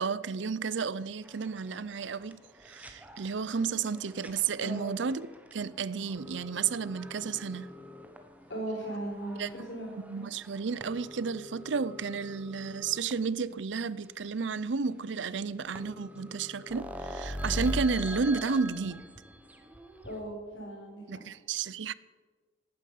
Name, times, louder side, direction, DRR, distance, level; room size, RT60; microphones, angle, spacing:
voice 1, 0.0-5.3 5.5-7.7 9.4-9.5 10.0-19.0 21.1-21.9, right 5 dB, 85° right, 0.6 m, -32 dB
sound 1, 1.2-13.1 13.8-13.9 14.0-14.1 14.5-14.6 15.4-15.5 15.7-20.2, equal, 10° right, 1.3 m, -43 dB
voice 2, 4.6-4.9 8.5-9.9 20.0-21.2, right 1 dB, 65° left, 4.4 m, -37 dB
18.0 x 9.6 x 8.4 m
head